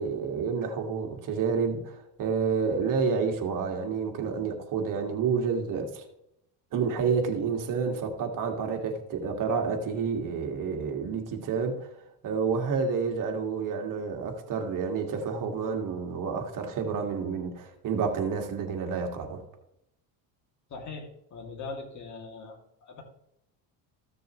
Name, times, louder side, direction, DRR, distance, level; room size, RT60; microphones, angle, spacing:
voice 1, 0.0-6.1 6.7-11.9 12.2-19.4, right 5 dB, 45° right, 2.0 m, -29 dB
voice 2, 20.7-23.0, left 4 dB, 40° left, 2.5 m, -41 dB
15.0 x 6.7 x 3.1 m
supercardioid pair, 120°, 44 cm